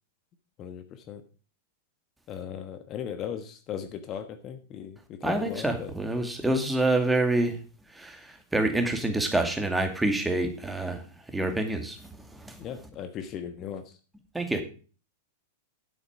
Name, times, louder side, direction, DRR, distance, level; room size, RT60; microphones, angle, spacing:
voice 1, 0.6-1.2 2.3-5.9 6.3-6.4 12.6-14.0, left 8 dB, 35° left, 9 dB, 1.3 m, -38 dB
voice 2, 5.2-7.6 8.0-8.2 8.5-11.0 11.3-12.0 12.5-12.6 14.3-14.6, right 2 dB, 5° right, 6 dB, 2.2 m, -26 dB
10.5 x 8.1 x 5.0 m, 0.37 s
figure-of-eight pair, 95°, 0 cm